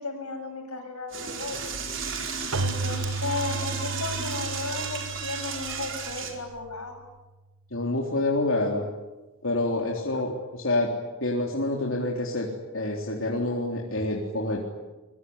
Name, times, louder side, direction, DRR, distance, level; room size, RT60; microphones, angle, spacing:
voice 1, 0.0-1.6 2.6-7.0, left 3 dB, 90° left, 4 dB, 7.7 m, -34 dB
Door / Toilet flush, 1.1-6.3, right 6 dB, 55° right, 4.6 m, -34 dB
Keyboard (musical), 2.5-7.0, right 3 dB, 75° right, 1.2 m, -34 dB
voice 2, 7.7-8.8 9.4-10.9 11.2-12.5 12.7-14.6, left 2 dB, 65° left, -1 dB, 3.7 m, -27 dB
26.0 x 23.5 x 9.7 m, 1.1 s
head